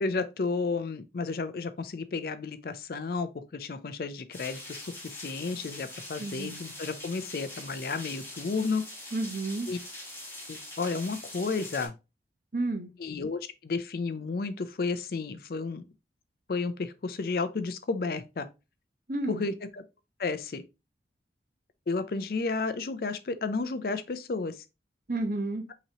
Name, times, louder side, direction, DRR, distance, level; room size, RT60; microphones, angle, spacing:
voice 1, 0.0-4.9 5.2-8.9 9.7-9.8 10.5-11.9 13.0-15.8 16.5-18.5 19.3-19.8 20.2-20.6 21.9-24.6, left 4 dB, 55° left, 0.4 m, -32 dB
sound 1, 4.3-11.9, left 1 dB, 10° left, 1.4 m, -43 dB
voice 2, 6.2-6.6 9.1-9.7 12.5-12.9 19.1-19.5 25.1-25.6, right 2 dB, 50° right, 0.8 m, -31 dB
5.7 x 2.9 x 2.8 m
head